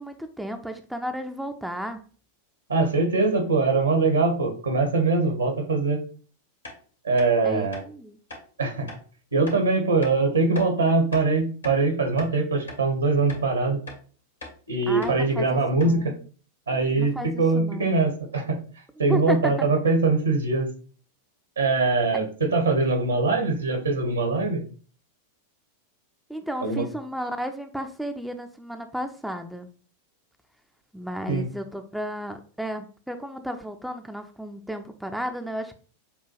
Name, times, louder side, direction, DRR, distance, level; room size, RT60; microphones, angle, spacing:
voice 1, 0.0-2.0 7.4-8.2 14.9-16.2 17.0-17.3 17.5-17.9 19.1-19.7 26.3-29.7 30.9-35.8, equal, ahead, 6 dB, 0.5 m, -33 dB
voice 2, 2.7-6.0 7.0-7.8 8.6-8.9 9.3-13.8 14.7-16.1 16.7-18.6 19.0-20.7 21.6-24.6 26.6-26.8 31.3-31.4, right 3 dB, 75° right, 4 dB, 1.4 m, -22 dB
sound 1, 6.6-6.8 7.2-7.3 7.7-7.9 8.3-8.4 8.9-9.0 9.5-9.6 10.0-10.2 10.6-10.7 11.1-11.8 12.2-12.3 12.7-12.8 13.3-13.5 13.9-14.0 14.4-14.6 15.0-15.2 15.5-15.6 15.8-16.0, left 2 dB, 80° left, 1.9 m, -41 dB
6.9 x 2.4 x 3.2 m, 0.40 s
figure-of-eight pair, 90°, 0 cm